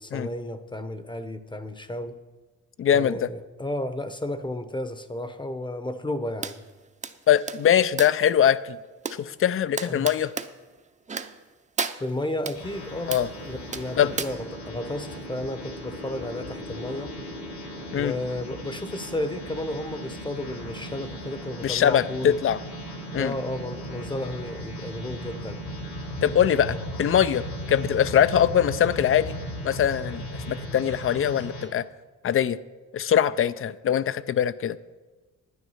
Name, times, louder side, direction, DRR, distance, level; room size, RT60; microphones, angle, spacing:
voice 1, 0.0-2.1 2.9-6.6 9.8-10.1 11.9-13.1 13.5-17.1 17.9-22.4 23.1-25.6 26.6-26.8, left 1 dB, 15° left, 11 dB, 0.8 m, -33 dB
voice 2, 2.8-3.3 7.3-8.8 9.2-10.3 13.1-13.3 14.0-14.1 17.9-18.1 21.6-22.6 23.1-23.3 26.2-29.4 29.6-31.9 32.2-32.6 32.9-34.8, left 9 dB, 45° left, 17 dB, 0.5 m, -22 dB
sound 1, 6.4-6.6 7.0-8.3 9.0-9.2 9.8-10.5 11.1-11.4 11.8-12.6 13.1-13.3 13.7-14.3, right 5 dB, 25° right, 0.7 m, -33 dB
sound 2, 12.5-31.6, equal, 85° left, 4.3 m, -37 dB
10.0 x 9.5 x 5.6 m, 1.3 s
cardioid pair, 90°, 30 cm